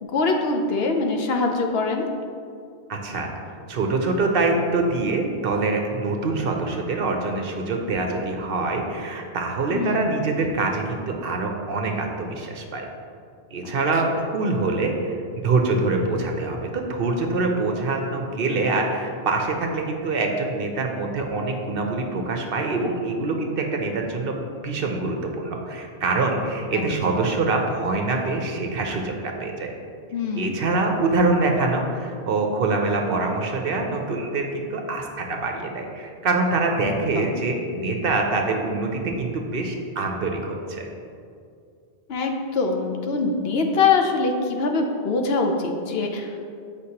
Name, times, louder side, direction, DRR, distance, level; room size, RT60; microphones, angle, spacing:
voice 1, 0.0-2.1 9.7-10.2 13.6-13.8 26.7-26.8 27.1-27.2 30.1-30.6 36.8-37.3 42.1-46.6, left 4 dB, 65° left, 3 dB, 0.8 m, -24 dB
voice 2, 2.9-3.3 3.7-12.9 13.5-15.2 15.4-24.4 24.6-29.7 30.3-40.9, right 3 dB, 60° right, 2 dB, 0.8 m, -25 dB
8.0 x 5.1 x 2.8 m, 2.4 s
omnidirectional pair, 1.1 m